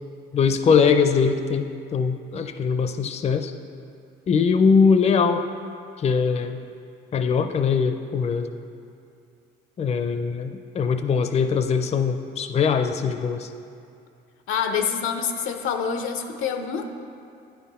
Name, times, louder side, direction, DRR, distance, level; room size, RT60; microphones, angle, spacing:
voice 1, 0.3-3.5 4.3-5.4 6.0-6.6 7.1-8.5 9.8-13.5, left 5 dB, 35° left, 8 dB, 0.4 m, -21 dB
voice 2, 14.5-16.9, left 7 dB, 85° left, 6 dB, 0.6 m, -26 dB
9.1 x 5.7 x 4.2 m, 2.5 s
cardioid pair, 90°, 20 cm